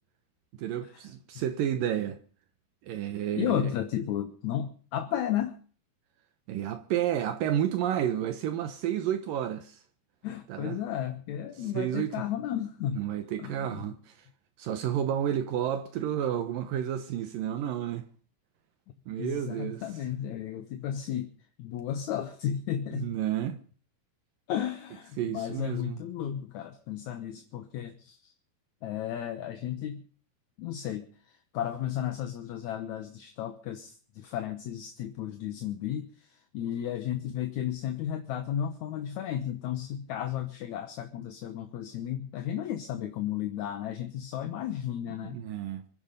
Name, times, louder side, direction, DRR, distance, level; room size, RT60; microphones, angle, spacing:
voice 1, 0.6-2.2 2.8-3.7 6.5-9.8 10.5-10.8 11.7-12.1 13.0-14.3 14.6-18.1 19.1-19.8 22.9-23.6 25.2-26.0 45.3-45.8, right 10 dB, 75° right, 2.5 m, -31 dB
voice 2, 3.4-5.6 10.2-13.0 13.4-13.9 19.2-21.3 21.6-23.2 24.5-28.3 28.8-30.0 30.6-45.4, left 10 dB, 65° left, 2.1 m, -34 dB
24.5 x 10.5 x 5.2 m
omnidirectional pair, 4.3 m